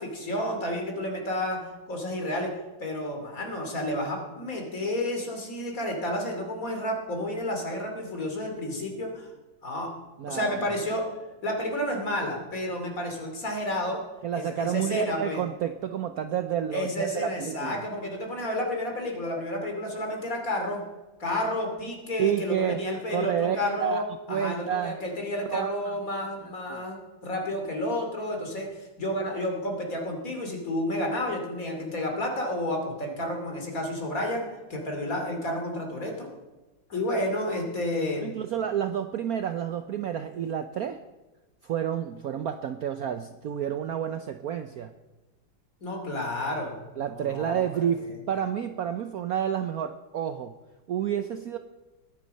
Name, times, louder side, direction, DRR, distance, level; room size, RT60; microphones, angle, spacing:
voice 1, 0.0-2.5 2.8-9.3 9.6-9.9 10.3-11.1 11.4-14.0 14.3-15.4 16.7-20.8 21.2-24.0 24.3-36.3 36.9-38.3 45.8-46.8 47.1-47.6, left 1 dB, 45° left, 2 dB, 3.1 m, -31 dB
voice 2, 10.2-10.7 14.2-17.8 22.2-22.8 23.1-24.0 24.3-25.0 25.5-26.3 26.7-26.8 38.2-41.0 41.6-44.9 47.0-50.5 50.9-51.6, right 9 dB, 65° right, 9 dB, 0.9 m, -30 dB
20.5 x 9.2 x 5.5 m, 1.1 s
omnidirectional pair, 2.1 m